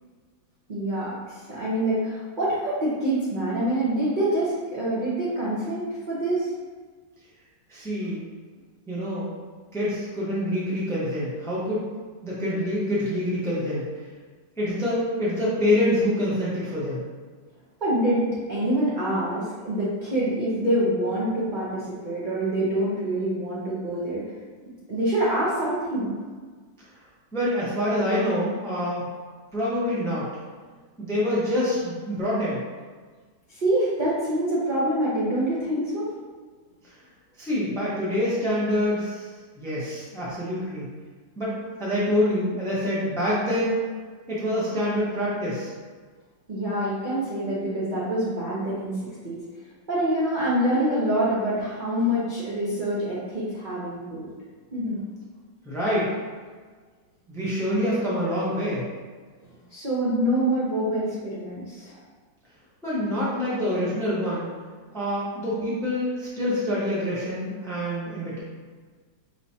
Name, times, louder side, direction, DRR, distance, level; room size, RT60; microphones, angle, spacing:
voice 1, 0.7-6.5 17.8-24.3 24.9-26.1 33.5-36.1 46.5-49.0 49.2-49.4 49.9-54.3 54.7-55.0 59.4-62.0, right 1 dB, 45° right, -9 dB, 0.6 m, -26 dB
voice 2, 7.7-8.2 8.9-9.3 9.7-11.8 12.2-13.9 14.6-17.0 27.3-29.1 29.5-30.3 31.0-32.6 36.8-36.9 37.4-39.3 39.6-40.9 41.4-43.8 44.3-45.7 55.6-56.1 57.3-58.9 62.8-64.5 64.9-68.4, left 1 dB, 5° left, -8 dB, 0.5 m, -26 dB
5.2 x 3.1 x 2.8 m, 1.5 s
omnidirectional pair, 2.0 m